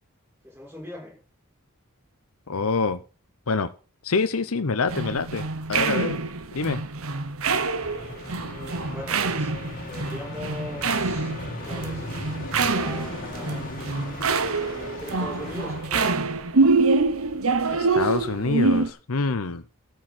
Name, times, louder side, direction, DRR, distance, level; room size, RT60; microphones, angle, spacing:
voice 1, 0.4-1.2 8.4-9.5 9.8-12.1 12.5-13.6 14.7-16.2, left 1 dB, 10° right, 5.8 m, -40 dB
voice 2, 2.5-3.0 3.5-3.7 4.0-6.2 6.5-6.8 17.7-19.7, left 4 dB, 70° left, 0.8 m, -26 dB
sound 1, 4.9-18.9, right 4 dB, 65° right, 1.0 m, -25 dB
sound 2, 7.8-15.9, left 2 dB, 40° left, 2.2 m, -38 dB
13.5 x 4.6 x 7.7 m
head